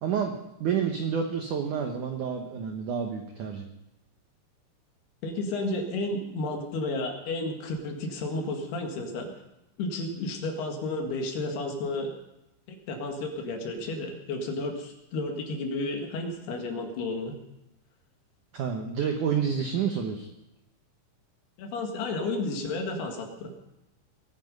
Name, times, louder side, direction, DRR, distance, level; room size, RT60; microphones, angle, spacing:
voice 1, 0.0-3.6 18.5-20.3, right 7 dB, 85° right, 4 dB, 1.8 m, -29 dB
voice 2, 5.2-9.3 9.8-12.1 12.7-17.3 21.6-23.5, left 2 dB, 65° left, 3 dB, 3.7 m, -32 dB
21.0 x 9.7 x 5.4 m, 0.90 s
omnidirectional pair, 5.3 m